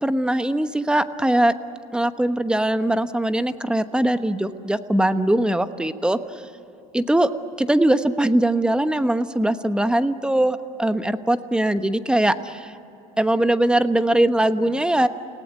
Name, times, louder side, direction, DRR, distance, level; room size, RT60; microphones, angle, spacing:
voice 1, 0.0-1.5 1.9-6.2 6.9-7.3 7.6-12.7 13.2-15.1, right 1 dB, 5° right, 10 dB, 1.2 m, -21 dB
29.5 x 18.0 x 9.0 m, 3.0 s
supercardioid pair, 95°, 16 cm